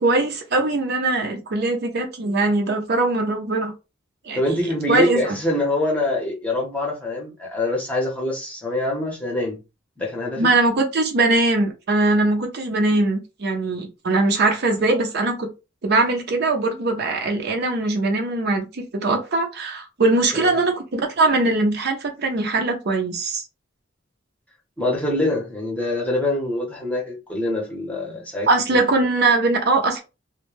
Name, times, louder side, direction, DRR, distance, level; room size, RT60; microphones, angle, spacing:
voice 1, 0.0-3.7 4.3-4.4 4.9-5.4 10.4-15.5 15.8-23.4 28.5-30.0, right 2 dB, 55° right, 0.6 m, -21 dB
voice 2, 4.3-9.6 10.0-10.5 20.4-20.5 24.8-28.5, left 1 dB, 5° left, 0.8 m, -24 dB
2.1 x 2.1 x 3.1 m
head